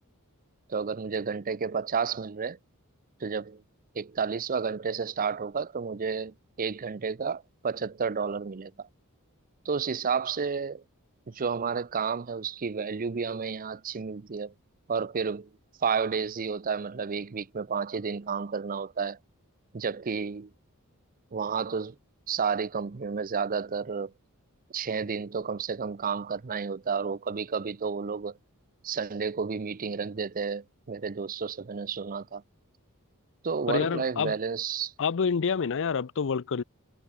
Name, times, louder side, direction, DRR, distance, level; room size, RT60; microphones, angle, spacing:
voice 1, 0.7-2.6 3.2-3.6 3.9-8.9 9.6-10.8 11.3-14.5 14.9-15.5 15.8-19.2 19.7-20.5 21.3-21.9 22.3-24.1 24.7-28.3 28.8-32.4 33.4-34.9, right 5 dB, 40° right, 0.6 m, -31 dB
voice 2, 33.7-34.4 35.0-36.6, left 6 dB, 60° left, 0.5 m, -27 dB
head